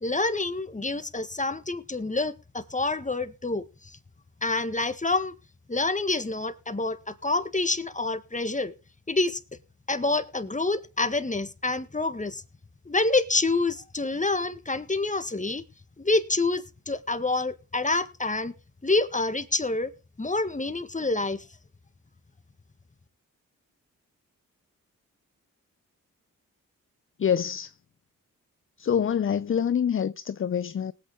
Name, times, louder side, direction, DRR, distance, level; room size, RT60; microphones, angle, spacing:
voice 1, 0.0-4.0 4.4-5.3 5.7-8.7 9.1-9.4 9.9-12.4 12.8-15.6 16.0-18.5 18.8-19.9 20.2-21.4, left 3 dB, 20° left, 1.7 m, -27 dB
voice 2, 27.2-27.8 28.8-30.9, left 8 dB, 40° left, 0.5 m, -26 dB
19.0 x 8.7 x 3.8 m
supercardioid pair, 45°, 34 cm